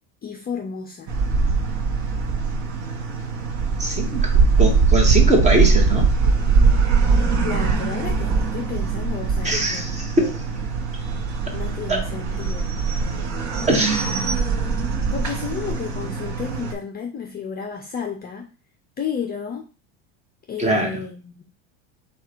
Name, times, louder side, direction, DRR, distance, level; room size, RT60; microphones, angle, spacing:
voice 1, 0.2-1.1 7.4-10.3 11.5-12.7 15.1-18.5 19.0-19.7 20.5-21.4, left 7 dB, 25° left, 4 dB, 0.6 m, -32 dB
sound 1, 1.1-16.7, right 4 dB, 45° right, 1.0 m, -21 dB
voice 2, 3.8-4.3 4.6-6.1 9.4-10.2 11.9-12.0 13.7-14.1 20.6-21.0, right 1 dB, 20° right, 2 dB, 1.2 m, -21 dB
4.7 x 2.5 x 4.4 m, 0.34 s
supercardioid pair, 120°, 38 cm